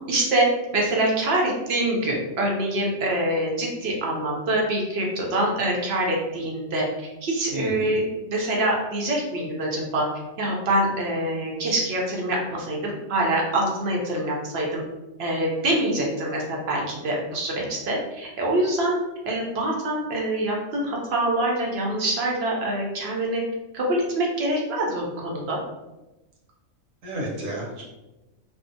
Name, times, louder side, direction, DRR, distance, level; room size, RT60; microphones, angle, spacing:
voice 1, 0.1-0.5 0.7-6.8 7.2-10.1 10.4-14.8 15.2-19.0 19.3-23.4 23.7-25.6, right 1 dB, 60° right, -2 dB, 0.7 m, -25 dB
voice 2, 7.5-8.0 27.0-27.8, equal, 75° right, -3 dB, 1.1 m, -32 dB
2.6 x 2.0 x 2.6 m, 1.0 s
omnidirectional pair, 1.4 m